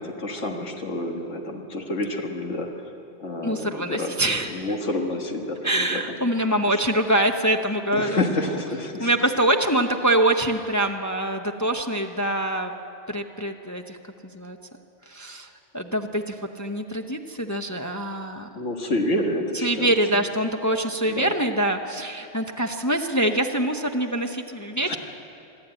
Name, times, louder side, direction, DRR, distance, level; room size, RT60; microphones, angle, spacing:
voice 1, 0.0-2.9 3.2-4.1 4.5-6.0 6.7-6.8 7.9-9.1 18.6-19.9 21.0-21.3 24.8-25.0, left 1 dB, 80° left, 2 dB, 1.9 m, -28 dB
voice 2, 3.4-4.5 5.6-8.5 9.0-12.7 13.1-14.0 14.2-14.6 15.1-18.5 19.6-25.0, right 1 dB, 20° left, 4 dB, 0.7 m, -24 dB
25.0 x 12.0 x 8.9 m, 2.7 s
omnidirectional pair, 1.2 m